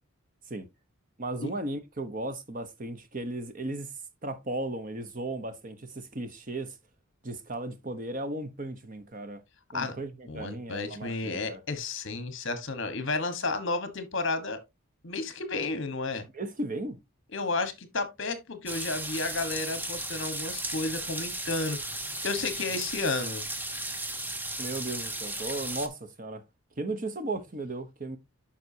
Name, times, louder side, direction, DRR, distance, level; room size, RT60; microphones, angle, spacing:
voice 1, 1.2-3.9 4.2-6.8 7.2-9.4 9.7-11.6 16.3-17.0 24.6-26.4 26.8-28.2, right 2 dB, 40° right, 0.9 m, -36 dB
voice 2, 10.3-14.6 15.0-16.2 17.3-21.8 22.2-23.4, left 3 dB, 60° left, 1.3 m, -32 dB
sound 1, 18.7-25.9, right 1 dB, 10° right, 0.7 m, -35 dB
9.2 x 5.8 x 2.7 m
head